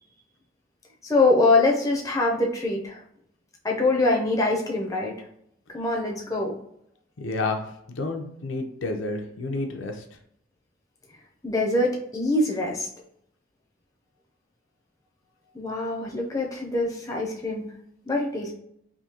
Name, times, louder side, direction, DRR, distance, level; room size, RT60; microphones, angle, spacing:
voice 1, 1.0-3.0 3.6-5.1 5.7-6.6 11.4-12.9 15.5-17.6 18.1-18.5, left 2 dB, 15° left, -1 dB, 0.5 m, -24 dB
voice 2, 7.2-7.6 7.9-10.0, left 2 dB, 90° left, 4 dB, 0.6 m, -30 dB
3.6 x 2.7 x 2.8 m, 0.72 s
head